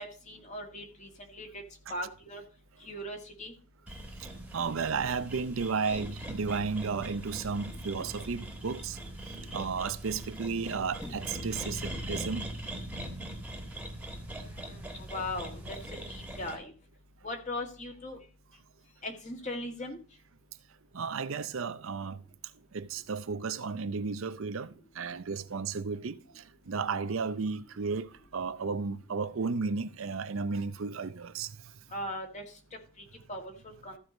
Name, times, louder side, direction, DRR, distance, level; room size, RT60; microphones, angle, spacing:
voice 1, 0.0-1.6 1.9-2.4 2.8-3.5 14.5-15.8 16.1-16.7 17.2-18.2 19.0-20.0 31.9-32.4 33.3-34.0, left 1 dB, 35° left, 2.0 m, -39 dB
sound 1, 3.9-16.5, right 1 dB, 5° right, 1.6 m, -41 dB
voice 2, 4.5-9.0 9.5-12.5 20.9-22.2 22.7-31.5, right 5 dB, 65° right, 0.6 m, -33 dB
sound 2, 7.9-8.3 11.0-11.4 11.9-12.0, equal, 15° left, 1.4 m, -48 dB
14.0 x 4.8 x 5.1 m
head